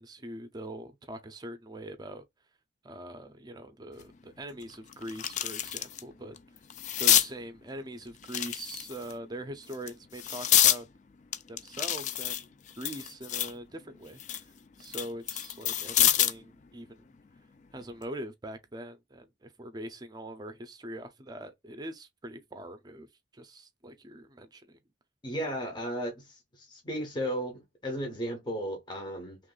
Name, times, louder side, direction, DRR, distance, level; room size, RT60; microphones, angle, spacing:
voice 1, 0.0-2.2 2.8-6.3 7.0-10.9 11.5-14.5 14.8-17.0 17.7-24.8, right 1 dB, 25° right, 0.5 m, -42 dB
sound 1, 4.0-4.1 4.6-6.0 6.4-7.3 8.2-9.1 9.7-10.8 11.3-13.6 14.0-16.4 17.8-18.0, left 11 dB, 40° left, 0.3 m, -27 dB
voice 2, 25.2-29.4, equal, 25° left, 0.7 m, -35 dB
3.0 x 2.5 x 3.8 m
head